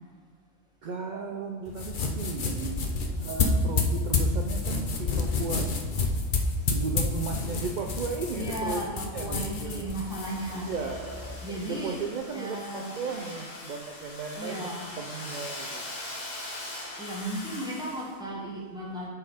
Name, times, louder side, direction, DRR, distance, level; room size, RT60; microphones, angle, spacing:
voice 1, 0.8-2.9 3.2-5.7 6.6-9.9 10.5-14.7 15.0-16.0, right 4 dB, 55° right, 2 dB, 0.5 m, -36 dB
sound 1, 1.7-11.4, left 3 dB, 45° left, 0.9 m, -29 dB
voice 2, 8.3-10.7 11.4-12.0 12.3-13.0 14.3-14.9 17.0-19.1, right 1 dB, 5° right, -4 dB, 1.6 m, -35 dB
Domestic sounds home sounds, 9.9-18.2, left 1 dB, 75° left, 1.9 m, -41 dB
9.6 x 4.6 x 4.9 m, 1.4 s
omnidirectional pair, 1.4 m